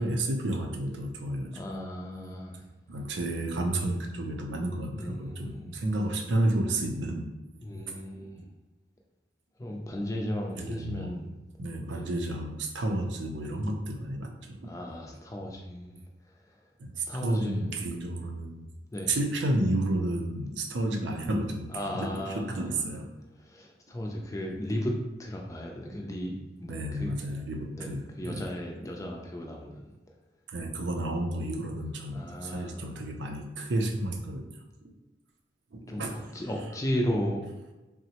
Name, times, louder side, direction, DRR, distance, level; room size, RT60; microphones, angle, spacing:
voice 1, 0.0-1.5 2.9-7.3 7.9-8.0 10.6-11.2 11.6-14.7 16.8-18.7 19.1-23.1 26.7-28.5 30.5-34.5 34.8-34.9 35.7-36.2, right 1 dB, 85° right, 2 dB, 0.5 m, -31 dB
voice 2, 1.5-2.6 4.9-5.7 7.6-8.4 9.6-11.3 11.9-12.1 14.6-16.0 17.1-17.7 18.9-19.1 21.7-22.7 23.4-27.2 27.8-29.9 32.1-33.0 35.9-36.1 36.3-37.4, equal, 20° left, 0 dB, 0.4 m, -35 dB
3.7 x 2.1 x 2.8 m, 1.1 s
head